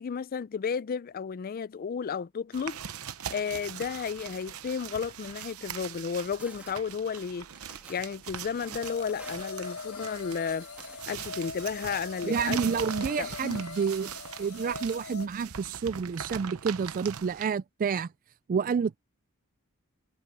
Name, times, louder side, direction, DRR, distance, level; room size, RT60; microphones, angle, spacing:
voice 1, 0.0-2.8 3.3-7.5 7.9-10.7 11.1-12.7 13.2-13.6, left 6 dB, 40° left, 0.4 m, -33 dB
sound 1, 2.5-17.5, right 8 dB, 75° right, 0.9 m, -41 dB
sound 2, 6.4-6.8 7.2-8.1 8.5-11.0 11.3-13.8, right 1 dB, 5° right, 2.4 m, -53 dB
sound 3, 8.8-15.3, left 4 dB, 80° left, 1.5 m, -41 dB
voice 2, 12.2-14.1 14.4-18.1 18.5-19.0, right 6 dB, 40° right, 0.3 m, -29 dB
head